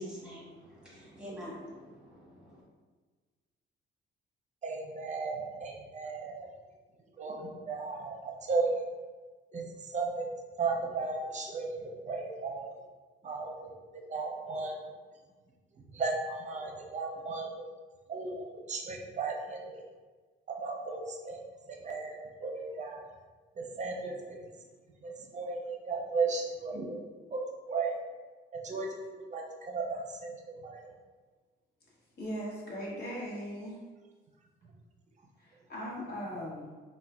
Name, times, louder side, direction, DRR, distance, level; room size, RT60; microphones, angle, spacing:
voice 1, 0.0-2.6, equal, 5° right, -6 dB, 1.3 m, -45 dB
voice 2, 4.6-6.5 7.2-8.7 9.5-10.3 10.6-12.7 13.2-14.8 15.9-17.5 18.1-19.8 20.5-23.1 23.8-24.1 25.0-27.0 27.3-27.4 27.7-28.0 28.6-28.9 29.2-30.9, right 4 dB, 35° right, 1 dB, 0.6 m, -35 dB
voice 3, 32.2-33.8 35.4-36.7, equal, 55° left, -4 dB, 1.1 m, -39 dB
3.8 x 2.2 x 2.3 m, 1.4 s
cardioid pair, 90°, 20 cm